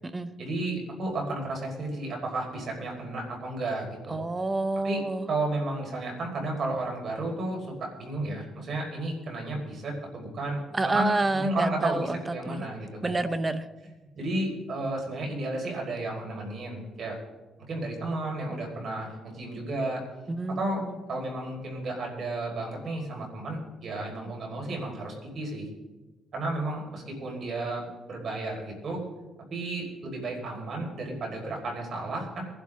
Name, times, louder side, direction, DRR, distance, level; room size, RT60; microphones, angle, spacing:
voice 1, 0.4-4.2 4.8-5.0 5.3-10.6 10.9-13.1 14.1-17.2 17.7-20.0 20.6-20.8 21.1-25.7 26.3-29.0 29.5-32.4, right 2 dB, 55° right, -1 dB, 5.1 m, -32 dB
voice 2, 4.1-5.3 10.7-12.2 12.5-12.7 13.0-13.6 20.3-21.0, right 2 dB, 25° right, 12 dB, 1.0 m, -28 dB
22.5 x 11.5 x 3.8 m, 1.2 s
cardioid pair, 90°, 0 cm